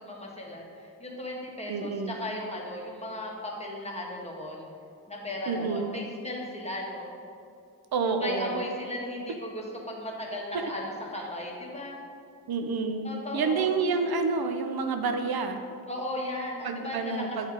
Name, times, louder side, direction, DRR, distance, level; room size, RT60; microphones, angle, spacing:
voice 1, 0.0-4.7 5.1-7.1 8.2-12.0 13.0-13.7 15.9-17.5, left 1 dB, 15° left, -2 dB, 1.4 m, -36 dB
voice 2, 1.7-2.2 5.5-5.9 7.9-8.6 10.5-10.7 12.5-15.6 16.6-17.5, right 4 dB, 80° right, 6 dB, 0.6 m, -29 dB
8.1 x 3.5 x 5.0 m, 2.4 s
cardioid pair, 60°, 36 cm